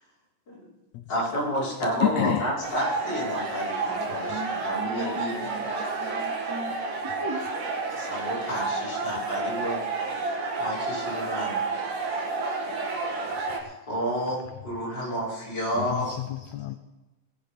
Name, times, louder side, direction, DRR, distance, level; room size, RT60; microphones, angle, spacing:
voice 1, 1.1-5.4 7.9-9.8 10.6-11.7 13.6-16.2, equal, 30° left, 6.0 m, -30 dB
voice 2, 2.0-2.5 9.2-9.3 15.7-16.8, left 13 dB, 75° left, 1.8 m, -29 dB
sound 1, 2.6-13.6, right 3 dB, 85° right, 3.5 m, -30 dB
voice 3, 3.9-7.5, right 1 dB, 10° right, 1.9 m, -37 dB
19.0 x 8.7 x 5.8 m
omnidirectional pair, 3.6 m